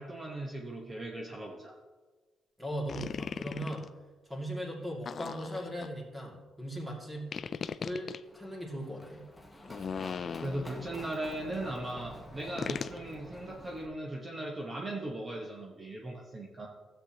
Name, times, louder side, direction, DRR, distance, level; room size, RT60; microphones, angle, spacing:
voice 1, 0.0-1.7 10.4-16.7, right 1 dB, 35° right, -1 dB, 1.1 m, -38 dB
voice 2, 2.6-3.9 4.3-7.3 7.8-9.3, equal, 10° right, -2 dB, 2.3 m, -38 dB
sound 1, 2.9-3.9 5.0-5.9 7.3-8.2 9.6-10.9 12.6-13.0, left 6 dB, 50° left, 0.3 m, -38 dB
Run, 8.2-13.9, left 1 dB, 10° left, 1.2 m, -49 dB
13.0 x 8.1 x 2.9 m, 1.3 s
cardioid pair, 90°, 0 cm